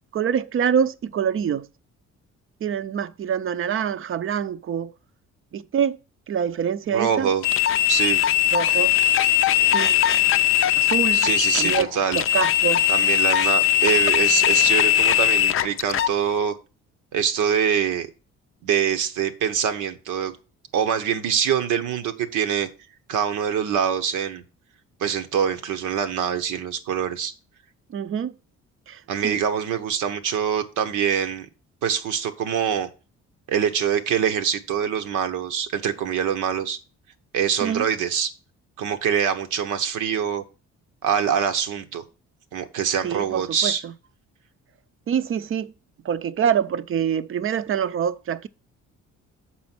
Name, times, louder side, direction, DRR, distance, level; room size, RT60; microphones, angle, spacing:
voice 1, 0.1-1.7 2.6-4.9 5.5-6.0 6.3-7.3 8.5-8.9 9.7-10.0 10.8-11.3 11.6-12.9 27.9-28.3 28.9-29.4 37.6-37.9 43.0-43.9 45.1-45.7 46.0-48.5, right 8 dB, 45° right, 0.5 m, -25 dB
voice 2, 6.9-7.4 7.9-8.2 11.1-12.2 12.9-16.5 17.1-18.1 18.6-20.3 20.7-22.7 23.1-24.4 25.0-27.3 29.1-31.5 31.8-32.9 33.5-36.8 37.3-38.3 38.8-40.4 41.0-42.0 42.5-43.8, right 8 dB, 90° right, 1.0 m, -24 dB
sound 1, 7.4-16.1, left 12 dB, 45° left, 0.4 m, -20 dB
7.0 x 4.3 x 5.9 m
cardioid pair, 90°, 30 cm